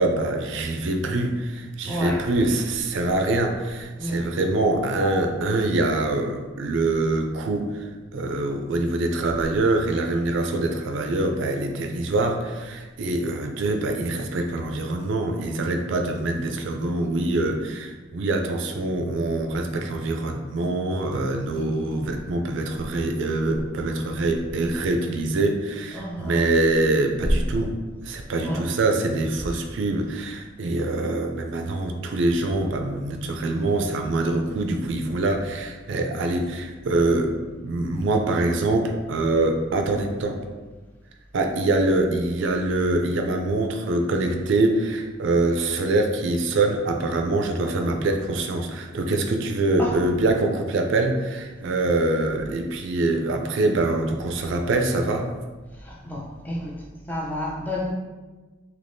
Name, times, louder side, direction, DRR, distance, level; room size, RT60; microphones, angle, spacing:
voice 1, 0.0-27.8 28.0-37.3 37.6-40.4 41.3-55.3, right 2 dB, 65° right, 4 dB, 0.3 m, -24 dB
voice 2, 1.9-2.3 4.0-4.2 25.9-26.5 28.4-28.6 49.8-50.0 55.8-57.9, equal, 10° left, -3 dB, 0.4 m, -30 dB
3.4 x 2.9 x 2.6 m, 1.3 s
head